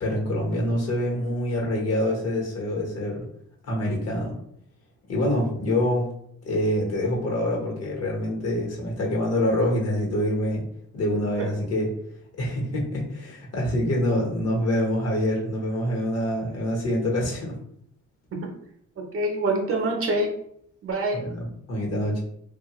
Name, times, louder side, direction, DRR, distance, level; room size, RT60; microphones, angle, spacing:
voice 1, 0.0-3.2 3.6-4.3 5.1-6.1 6.4-10.6 10.9-11.9 12.4-17.5 21.1-22.2, left 1 dB, 55° left, -2 dB, 1.1 m, -26 dB
voice 2, 19.0-20.3 20.8-21.2, right 2 dB, 45° right, 2 dB, 0.7 m, -26 dB
2.7 x 2.3 x 2.9 m, 0.69 s
cardioid pair, 90°, 30 cm